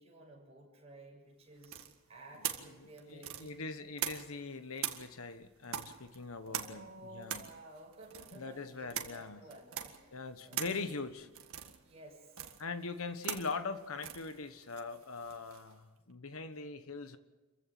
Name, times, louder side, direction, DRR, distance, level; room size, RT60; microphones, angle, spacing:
voice 1, 0.0-3.8 6.4-10.8 11.8-12.5, right 1 dB, 30° right, -2 dB, 6.9 m, -54 dB
sound 1, 1.6-4.5 4.8-15.7, right 9 dB, 80° right, 1.8 m, -43 dB
voice 2, 2.8-7.4 8.3-9.4 10.1-11.3 12.6-17.2, left 4 dB, 80° left, 10 dB, 1.3 m, -42 dB
26.5 x 15.5 x 7.8 m, 1.2 s
head